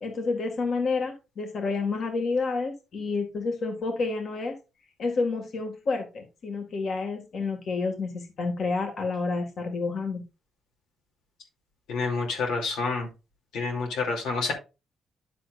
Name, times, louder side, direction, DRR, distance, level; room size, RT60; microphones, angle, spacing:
voice 1, 0.0-4.6 5.0-10.2, left 4 dB, 55° left, 3 dB, 1.9 m, -29 dB
voice 2, 11.9-13.1 13.5-14.5, left 4 dB, 90° left, 0 dB, 2.7 m, -28 dB
10.0 x 7.5 x 2.5 m, 0.29 s
cardioid pair, 90°, 0 cm